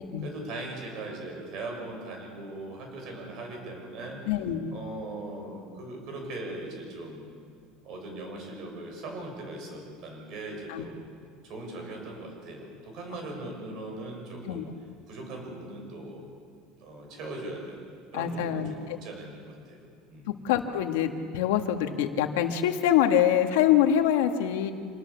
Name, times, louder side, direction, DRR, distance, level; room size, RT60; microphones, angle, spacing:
voice 1, 0.2-4.2 4.7-7.3 7.8-11.0 11.4-14.7 15.1-16.2 16.8-19.8 20.1-20.3, right 2 dB, 40° right, 1 dB, 6.6 m, -39 dB
voice 2, 4.3-4.7 10.7-10.8 14.5-14.6 18.1-19.0 20.4-24.7, left 10 dB, 85° left, 6 dB, 1.7 m, -25 dB
27.0 x 18.5 x 7.1 m, 2.2 s
cardioid pair, 170°, 0 cm